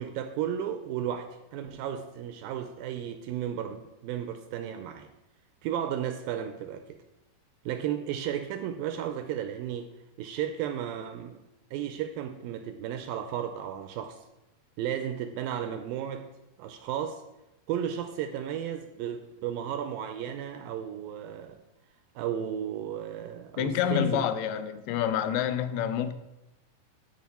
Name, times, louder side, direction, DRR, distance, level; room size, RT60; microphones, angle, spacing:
voice 1, 0.0-5.1 5.6-7.0 7.7-9.9 10.2-11.4 11.7-14.2 14.8-16.3 16.6-17.2 17.7-21.6 22.2-24.3, right 9 dB, 80° right, 2.1 m, -34 dB
voice 2, 23.6-26.1, left 9 dB, 85° left, 2.6 m, -28 dB
13.0 x 5.0 x 4.2 m
omnidirectional pair, 4.4 m